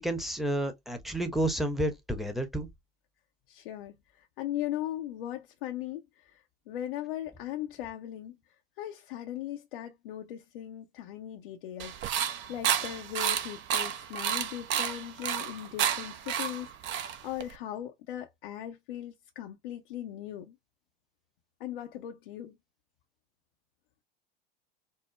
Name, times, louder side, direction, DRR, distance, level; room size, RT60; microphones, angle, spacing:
voice 1, 0.0-2.7, right 1 dB, ahead, 0.9 m, -30 dB
voice 2, 3.5-20.6 21.6-22.6, left 12 dB, 65° left, 0.6 m, -39 dB
sound 1, 11.8-17.5, right 9 dB, 40° right, 0.7 m, -31 dB
4.4 x 2.0 x 3.1 m
hypercardioid pair, 85°, 29 cm